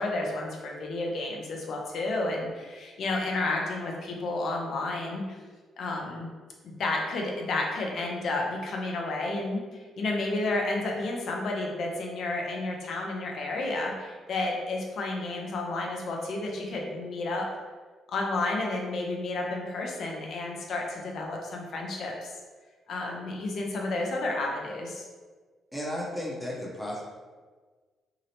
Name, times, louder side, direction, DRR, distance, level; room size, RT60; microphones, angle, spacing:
voice 1, 0.0-5.4 5.8-6.3 6.6-9.6 10.0-17.5 18.1-22.3 22.9-25.0, left 2 dB, 65° left, 0 dB, 0.5 m, -31 dB
voice 2, 25.7-27.0, equal, 5° left, -4 dB, 0.6 m, -34 dB
2.8 x 2.0 x 2.7 m, 1.4 s
cardioid pair, 90°, 0 cm